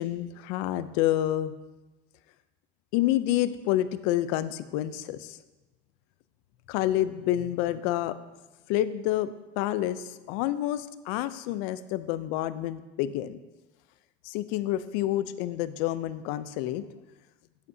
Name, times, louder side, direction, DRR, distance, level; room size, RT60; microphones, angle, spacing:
voice 1, 0.0-1.5 2.9-5.4 6.7-8.1 8.7-13.4 14.2-16.9, left 13 dB, 75° left, 14 dB, 0.6 m, -28 dB
12.0 x 8.3 x 2.8 m, 1.1 s
cardioid pair, 130°, 21 cm